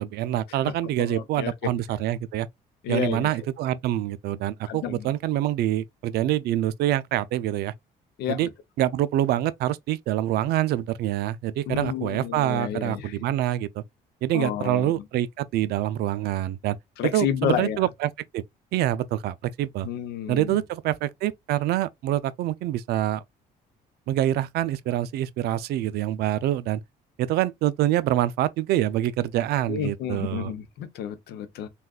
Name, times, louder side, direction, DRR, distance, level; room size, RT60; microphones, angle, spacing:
voice 1, 0.0-2.5 2.9-7.7 8.3-8.5 8.8-13.8 14.2-16.8 17.0-18.4 18.7-19.9 20.3-23.2 24.1-26.8 27.2-30.5, right 13 dB, 70° right, 0.4 m, -26 dB
voice 2, 1.0-1.5 2.8-3.3 4.7-5.0 8.2-8.4 11.7-13.1 14.3-14.9 17.0-17.8 19.8-20.5 29.7-31.7, left 10 dB, 80° left, 0.7 m, -30 dB
3.6 x 2.4 x 2.3 m
cardioid pair, 110°, 17 cm